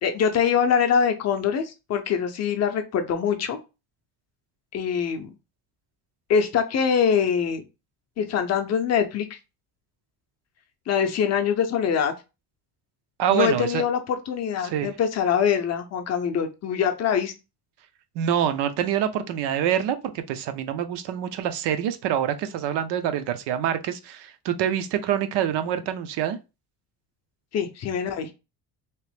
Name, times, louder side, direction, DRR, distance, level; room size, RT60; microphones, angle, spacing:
voice 1, 0.0-3.6 4.7-5.3 6.3-7.6 8.2-9.3 10.9-12.1 13.3-17.3 27.5-28.3, left 7 dB, 40° left, 0.5 m, -23 dB
voice 2, 13.2-13.8 14.6-14.9 18.1-26.4, right 10 dB, 75° right, 0.6 m, -26 dB
3.0 x 2.9 x 3.2 m
cardioid pair, 180°, 41 cm